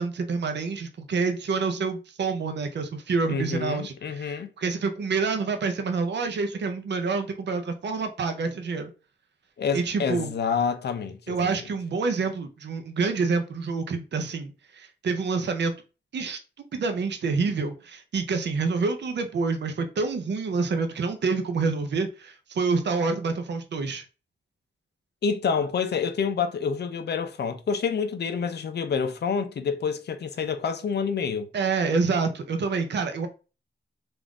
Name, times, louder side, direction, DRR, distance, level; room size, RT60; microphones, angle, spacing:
voice 1, 0.0-8.9 9.7-10.3 11.3-15.7 16.1-16.4 16.7-24.0 31.5-33.3, right 4 dB, 60° right, 0.6 m, -27 dB
voice 2, 3.3-4.5 9.6-11.4 25.2-31.5, left 6 dB, 55° left, 0.5 m, -28 dB
3.6 x 2.5 x 3.5 m
wide cardioid pair, 160°, 20 cm